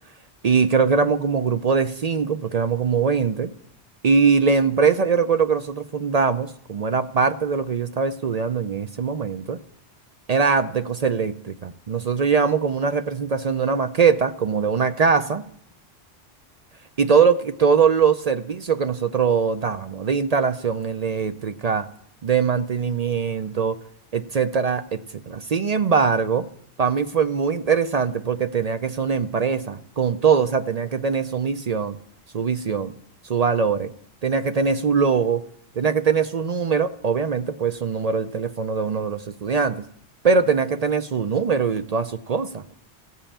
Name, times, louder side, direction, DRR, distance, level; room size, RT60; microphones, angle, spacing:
voice 1, 0.4-3.5 4.0-9.6 10.3-15.4 17.0-21.9 22.2-23.8 24.1-26.5 26.8-32.0 32.3-32.9 33.3-33.9 34.2-35.4 35.8-39.8 40.2-42.6, right 5 dB, 50° right, 10 dB, 0.5 m, -22 dB
15.0 x 5.7 x 8.5 m, 0.68 s
omnidirectional pair, 1.1 m